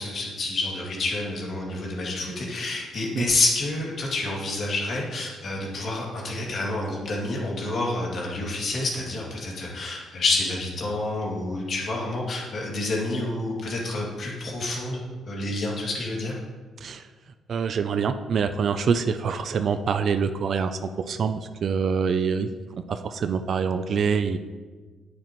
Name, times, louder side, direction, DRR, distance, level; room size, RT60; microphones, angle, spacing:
voice 1, 0.0-15.0 15.3-16.4, left 2 dB, 55° left, -2 dB, 2.4 m, -28 dB
voice 2, 17.5-20.8 21.1-22.5 22.9-24.4, right 6 dB, 55° right, 9 dB, 0.4 m, -25 dB
8.9 x 8.4 x 3.1 m, 1.4 s
cardioid pair, 90°, 0 cm